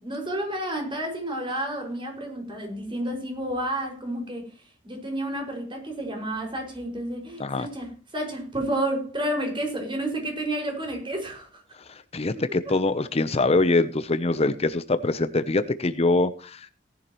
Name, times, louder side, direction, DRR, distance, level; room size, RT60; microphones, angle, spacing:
voice 1, 0.0-4.5 4.8-11.6 12.3-12.4, right 1 dB, 25° right, 5.7 m, -30 dB
voice 2, 11.9-16.7, left 2 dB, 35° left, 0.7 m, -24 dB
18.0 x 11.0 x 3.1 m
head